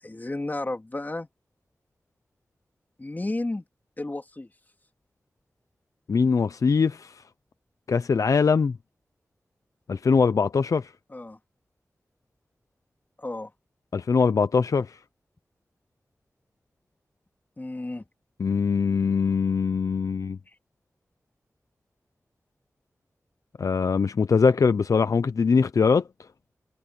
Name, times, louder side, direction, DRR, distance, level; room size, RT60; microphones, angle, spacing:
voice 1, 0.0-1.3 3.0-3.6 4.0-4.5 11.1-11.4 13.2-13.5 17.6-18.0, left 2 dB, 30° left, 3.5 m, -32 dB
voice 2, 6.1-7.1 7.9-8.8 9.9-10.9 13.9-14.9 18.4-20.4 23.6-26.0, left 5 dB, 80° left, 0.6 m, -22 dB
wide cardioid pair, 60°, 6 cm